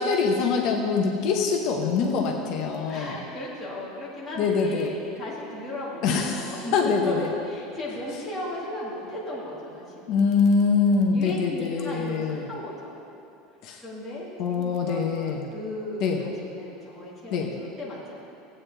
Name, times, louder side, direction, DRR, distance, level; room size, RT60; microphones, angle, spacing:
voice 1, 0.0-3.2 4.4-4.9 6.0-7.3 10.1-12.5 13.6-13.8 14.4-15.5 16.0-16.2 17.3-17.5, left 5 dB, 45° left, 1 dB, 0.9 m, -24 dB
voice 2, 2.9-7.2 7.4-10.3 11.1-13.0 13.8-18.2, left 1 dB, 5° left, -9 dB, 1.9 m, -36 dB
17.0 x 8.7 x 3.4 m, 2.7 s
cardioid pair, 175°, 0 cm